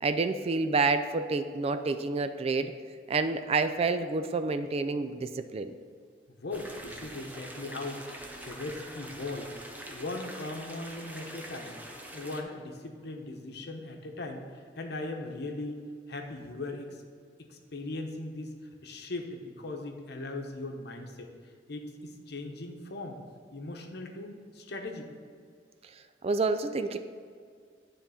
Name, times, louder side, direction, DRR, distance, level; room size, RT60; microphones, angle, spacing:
voice 1, 0.0-2.7 3.1-5.7 26.2-27.0, right 3 dB, 35° right, 9 dB, 0.3 m, -28 dB
voice 2, 6.3-8.0 8.4-9.5 9.9-11.8 12.1-15.8 16.1-17.0 17.5-18.5 18.8-21.3 21.7-23.2 23.5-25.1, left 2 dB, 60° left, 3 dB, 0.9 m, -39 dB
sound 1, 6.5-12.4, right 1 dB, 10° right, 0.7 m, -44 dB
9.4 x 3.7 x 5.6 m, 2.2 s
head